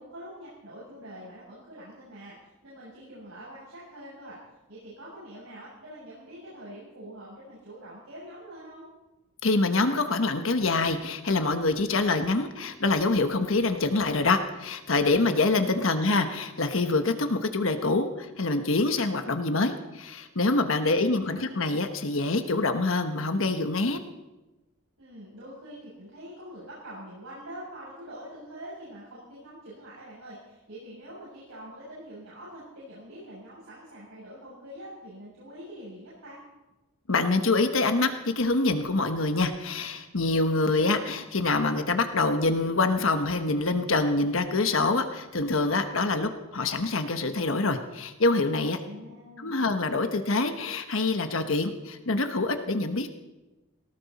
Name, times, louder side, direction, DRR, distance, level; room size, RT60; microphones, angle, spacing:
voice 1, 0.0-2.4 2.6-4.4 4.7-8.9 15.7-16.2 20.7-21.7 25.0-36.4 48.8-49.5, equal, 85° right, -8 dB, 7.4 m, -45 dB
voice 2, 9.4-24.0 37.1-48.8 49.4-53.1, left 3 dB, 70° left, 7 dB, 1.2 m, -25 dB
18.5 x 18.5 x 4.2 m, 1.1 s
head